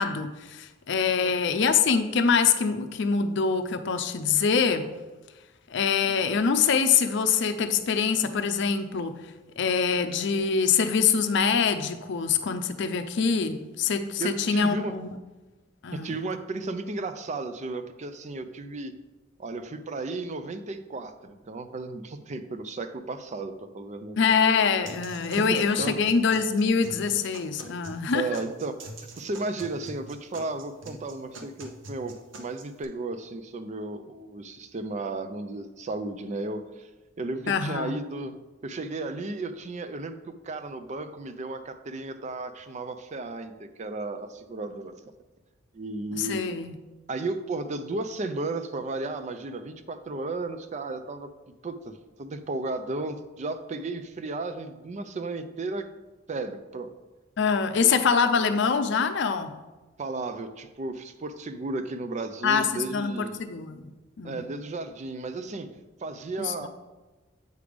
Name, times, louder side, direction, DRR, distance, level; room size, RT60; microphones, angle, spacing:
voice 1, 0.0-4.9 5.7-9.2 9.6-15.1 15.8-16.2 24.2-28.3 37.5-37.9 46.1-46.7 57.4-59.5 62.4-63.9 64.2-64.4 66.4-66.7, left 6 dB, 65° left, 9 dB, 0.5 m, -24 dB
voice 2, 14.2-14.9 15.9-18.9 19.4-24.3 25.4-25.5 25.8-25.9 28.1-28.7 29.1-36.9 37.2-38.3 38.6-45.0 45.7-46.4 47.1-51.3 51.6-55.9 56.3-56.9 57.7-58.0 60.0-63.3 64.2-65.7 66.0-66.7, right 2 dB, 35° right, 9 dB, 0.4 m, -34 dB
sound 1, 24.8-32.8, right 1 dB, 70° right, 0.8 m, -45 dB
8.0 x 3.4 x 5.1 m, 1.1 s
head